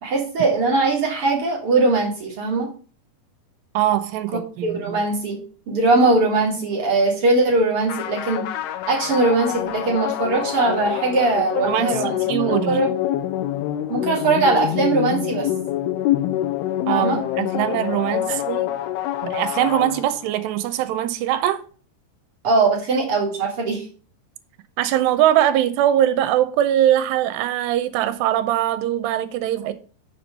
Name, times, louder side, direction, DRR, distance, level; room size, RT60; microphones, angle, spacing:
voice 1, 0.0-2.7 4.6-5.4 5.7-8.5 8.9-12.9 13.9-15.5 16.9-17.2 18.3-18.4 22.4-23.8, right 3 dB, 45° right, 2.1 m, -20 dB
voice 2, 3.7-5.0 11.7-12.8 16.9-18.7 19.2-21.6 24.8-29.7, right 12 dB, 90° right, 2.8 m, -21 dB
sound 1, 7.9-20.4, left 13 dB, 75° left, 2.5 m, -26 dB
7.1 x 4.4 x 6.6 m
omnidirectional pair, 4.9 m